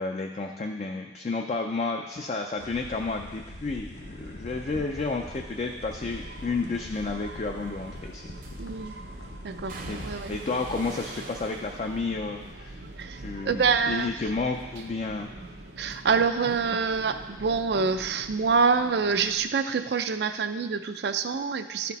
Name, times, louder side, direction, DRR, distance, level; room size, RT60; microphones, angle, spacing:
voice 1, 0.0-8.2 9.9-12.8 13.2-15.3, left 3 dB, 40° left, 3 dB, 0.4 m, -31 dB
sound 1, 2.6-10.3, left 1 dB, 75° left, 0.8 m, -43 dB
sound 2, 3.9-19.4, right 1 dB, 90° right, 0.8 m, -44 dB
sound 3, 6.9-7.2 8.4-8.9 9.7-13.9 14.2-14.9 15.2-18.5 18.8-19.9 20.2-20.4, right 2 dB, 50° right, 0.8 m, -46 dB
voice 2, 8.6-8.9 9.4-10.3 13.0-13.2 13.4-14.1 15.8-21.9, right 5 dB, 70° right, 9 dB, 0.4 m, -26 dB
12.0 x 4.3 x 4.1 m, 1.2 s
head